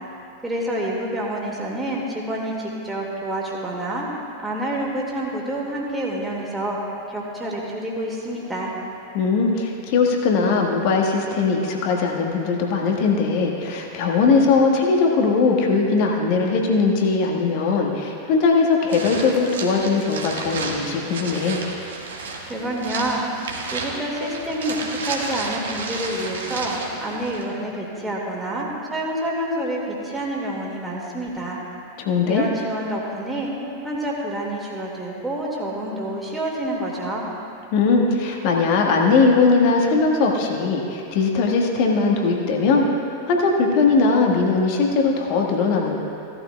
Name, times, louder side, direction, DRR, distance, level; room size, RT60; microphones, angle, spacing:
voice 1, 0.4-4.1 4.4-6.8 7.1-8.7 22.4-23.3 23.7-31.6 32.2-33.5 33.8-37.2, right 1 dB, 10° right, -4 dB, 2.0 m, -28 dB
voice 2, 9.1-21.6 32.0-32.5 37.7-42.8 43.2-45.9, left 4 dB, 45° left, 1 dB, 1.5 m, -20 dB
sound 1, 18.9-27.4, right 3 dB, 65° right, 1.4 m, -32 dB
16.5 x 12.0 x 2.3 m, 2.7 s
figure-of-eight pair, 90°, 0 cm